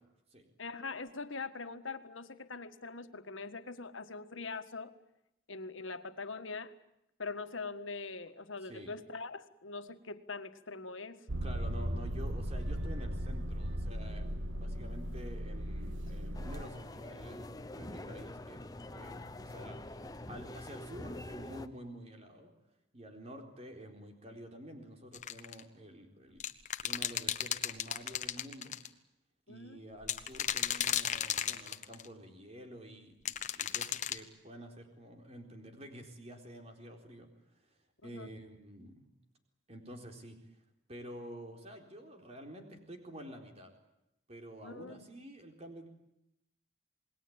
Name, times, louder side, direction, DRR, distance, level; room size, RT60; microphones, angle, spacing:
voice 1, 0.6-4.9 5.5-6.7 7.2-11.2 29.5-29.8 38.0-38.3 44.6-45.0, left 4 dB, 90° left, 10 dB, 1.7 m, -42 dB
voice 2, 8.6-8.9 11.4-18.6 18.9-19.8 20.3-22.5 22.9-26.4 26.8-28.8 29.5-37.8 38.0-39.1 39.7-40.4 40.9-43.7 44.3-45.9, equal, 30° right, 4 dB, 4.1 m, -49 dB
Motor vehicle (road), 11.3-16.6, equal, 85° right, 1.7 m, -37 dB
sound 1, 16.3-21.7, left 1 dB, 20° left, 0.9 m, -45 dB
sound 2, 25.1-25.6 26.4-28.9 30.0-32.1 33.3-34.2, left 9 dB, 40° left, 1.2 m, -34 dB
28.0 x 20.5 x 8.9 m, 0.85 s
head